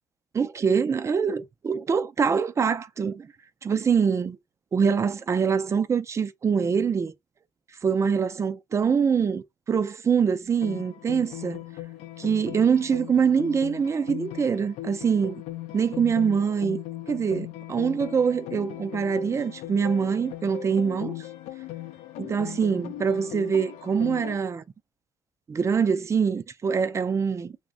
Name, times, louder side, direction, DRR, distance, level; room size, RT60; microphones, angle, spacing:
voice 1, 0.3-3.3 3.6-4.4 4.7-7.1 7.8-11.6 12.2-15.4 15.7-16.8 17.1-21.2 22.2-24.6 25.5-27.5, right 6 dB, 25° right, 0.3 m, -24 dB
sound 1, 10.6-24.4, left 14 dB, 80° left, 0.4 m, -39 dB
2.5 x 2.1 x 3.7 m
cardioid pair, 90°, 12 cm